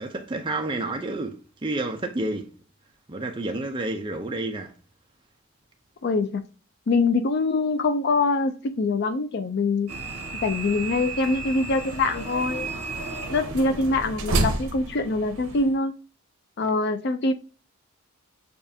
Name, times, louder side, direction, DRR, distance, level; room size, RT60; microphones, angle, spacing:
voice 1, 0.0-2.5 3.1-4.7, right 2 dB, 20° right, 0.5 m, -30 dB
voice 2, 6.0-6.4 6.9-9.9 10.4-12.7 13.3-15.9 16.6-17.3, left 3 dB, 50° left, 0.4 m, -24 dB
sound 1, 9.9-15.7, right 2 dB, 80° right, 0.8 m, -31 dB
6.8 x 2.4 x 2.7 m
head